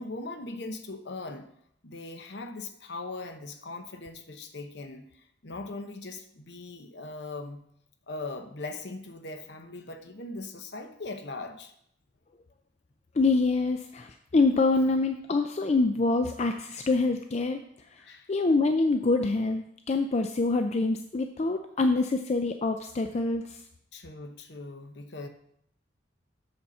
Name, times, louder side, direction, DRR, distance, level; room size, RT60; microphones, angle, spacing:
voice 1, 0.0-1.5 1.8-7.6 8.1-11.7 18.0-18.3 23.9-25.3, left 2 dB, 60° left, 6 dB, 0.9 m, -40 dB
voice 2, 13.2-17.6 18.3-23.6, left 3 dB, 35° left, 6 dB, 0.4 m, -25 dB
7.9 x 4.2 x 6.4 m, 0.73 s
head